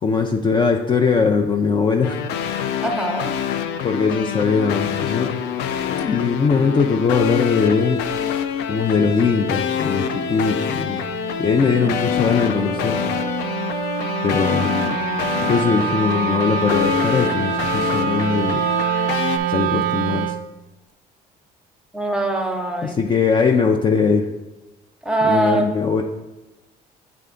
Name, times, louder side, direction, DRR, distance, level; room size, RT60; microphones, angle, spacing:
voice 1, 0.0-2.2 3.8-5.3 5.9-8.0 8.7-11.0 11.4-13.0 14.2-15.0 15.4-18.7 19.5-20.4 22.8-24.3 25.2-26.0, left 5 dB, 30° left, 3 dB, 0.4 m, -20 dB
sound 1, 2.0-19.4, left 8 dB, 90° left, 0.4 m, -26 dB
voice 2, 2.8-3.3 11.7-12.0 21.9-23.0 25.0-25.7, right 2 dB, 5° right, 3 dB, 0.8 m, -22 dB
Wind instrument woodwind instrument, 8.9-20.5, right 11 dB, 55° right, 0.4 m, -26 dB
8.0 x 3.4 x 3.7 m, 1.0 s
cardioid pair, 110°, 17 cm